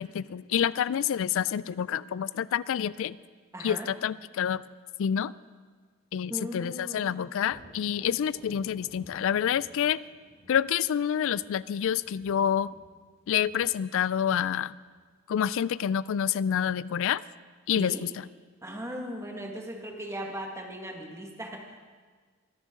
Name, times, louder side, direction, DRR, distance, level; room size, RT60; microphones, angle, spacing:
voice 1, 0.0-3.2 3.6-4.6 5.0-5.3 6.1-10.0 10.5-12.7 13.3-14.7 15.3-17.2 17.7-18.0, left 9 dB, 60° left, 19 dB, 0.3 m, -28 dB
voice 2, 3.5-3.9 6.3-7.1 17.7-18.0 18.6-21.9, equal, 15° right, 1 dB, 1.6 m, -38 dB
Thunder, 7.4-15.1 18.7-18.8 19.3-20.2, equal, 15° left, 5.3 m, -55 dB
23.5 x 10.5 x 3.7 m, 1.5 s
head